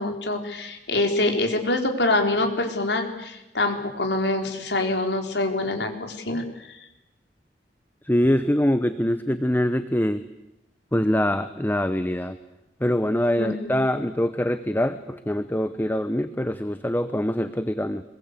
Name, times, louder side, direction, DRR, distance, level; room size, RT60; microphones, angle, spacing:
voice 1, 0.0-6.4 13.4-13.7, left 2 dB, 80° left, 4 dB, 4.3 m, -25 dB
voice 2, 8.0-10.2 10.9-12.4 12.8-18.0, left 1 dB, 10° left, 11 dB, 0.9 m, -24 dB
26.0 x 22.5 x 8.3 m, 0.93 s
head